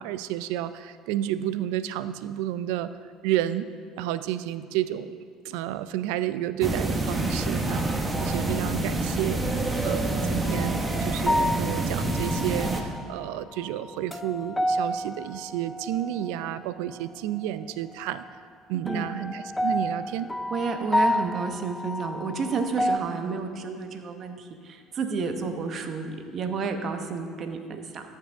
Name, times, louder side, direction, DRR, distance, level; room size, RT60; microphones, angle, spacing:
voice 1, 0.0-2.9 3.2-3.7 4.0-5.2 5.4-9.4 9.8-18.4 18.7-20.3, right 12 dB, 85° right, 13 dB, 0.3 m, -31 dB
sound 1, 6.6-12.8, right 2 dB, 20° right, 0.9 m, -27 dB
sound 2, 10.5-10.8 11.3-13.1 13.6-16.5 18.9-23.0, left 1 dB, 5° left, 0.4 m, -29 dB
voice 2, 20.5-28.0, right 4 dB, 45° right, 6 dB, 0.9 m, -31 dB
14.0 x 6.6 x 3.5 m, 2.2 s
supercardioid pair, 105°, 0 cm